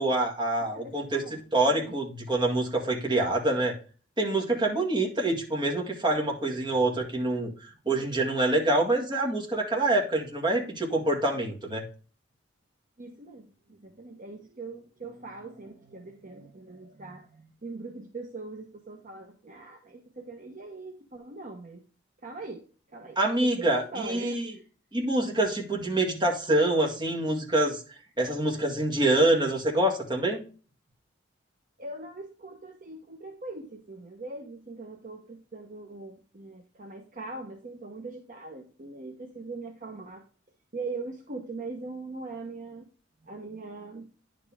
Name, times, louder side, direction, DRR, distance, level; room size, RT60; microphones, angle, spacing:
voice 1, 0.0-3.7 4.2-7.5 7.9-11.8 23.2-24.5 24.9-27.8 28.2-30.4, right 2 dB, 25° right, -1 dB, 1.9 m, -26 dB
voice 2, 0.7-1.4 1.7-1.9 4.6-5.2 13.0-21.8 22.2-22.6 22.9-24.6 31.8-40.2 40.7-42.9 43.2-44.1, right 3 dB, 45° right, 3 dB, 1.0 m, -41 dB
10.0 x 5.1 x 3.5 m, 0.38 s
head